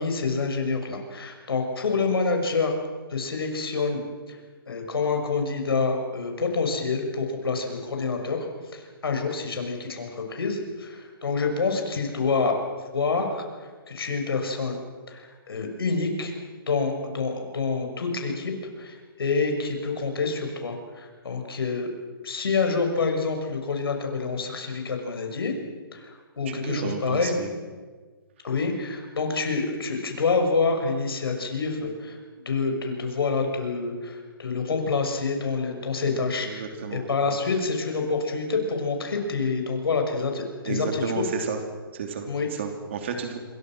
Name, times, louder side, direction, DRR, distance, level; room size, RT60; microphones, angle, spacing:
voice 1, 0.0-2.7 3.1-4.0 4.3-4.4 4.7-8.4 8.7-12.6 12.9-13.4 13.9-14.8 15.1-16.3 16.7-21.9 22.2-25.5 25.9-27.4 28.4-32.2 32.4-36.6 36.9-41.0 42.3-42.5, left 4 dB, 75° left, 3 dB, 6.3 m, -27 dB
voice 2, 26.5-27.5 36.1-36.2 36.4-37.4 40.6-41.6 41.9-43.4, right 5 dB, 30° right, 5 dB, 3.0 m, -32 dB
27.5 x 24.0 x 6.2 m, 1.4 s
hypercardioid pair, 180°, 12 cm